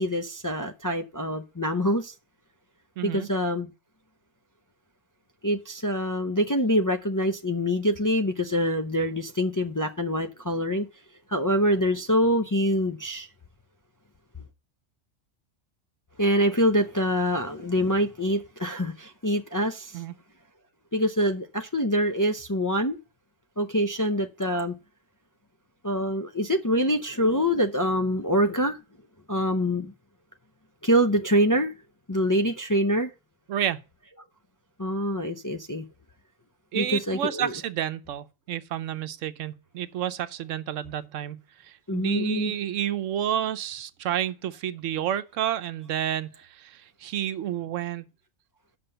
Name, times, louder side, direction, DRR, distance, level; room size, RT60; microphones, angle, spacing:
voice 1, 0.0-2.1 3.0-3.7 5.4-10.9 11.3-13.3 16.2-20.0 20.9-23.0 23.6-24.7 25.8-28.8 29.3-29.9 30.8-31.7 32.1-33.1 34.8-35.8 36.7-37.6 41.9-42.5, equal, 30° left, 0.3 m, -25 dB
voice 2, 3.0-3.3 19.9-20.1 33.5-33.8 36.7-48.0, right 11 dB, 75° right, 1.0 m, -30 dB
7.7 x 5.9 x 6.6 m
omnidirectional pair, 1.3 m